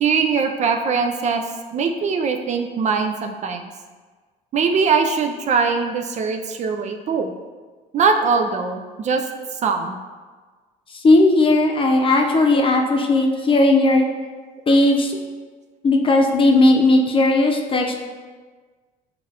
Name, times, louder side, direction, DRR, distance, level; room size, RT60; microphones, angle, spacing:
voice 1, 0.0-1.4 1.7-3.7 4.5-7.3 7.9-9.2 9.6-10.0, right 5 dB, 40° right, 5 dB, 0.4 m, -21 dB
voice 2, 10.9-14.0 14.7-15.2 15.8-17.9, left 2 dB, 30° left, 1 dB, 0.7 m, -16 dB
6.7 x 2.5 x 2.8 m, 1.4 s
supercardioid pair, 90°, 18 cm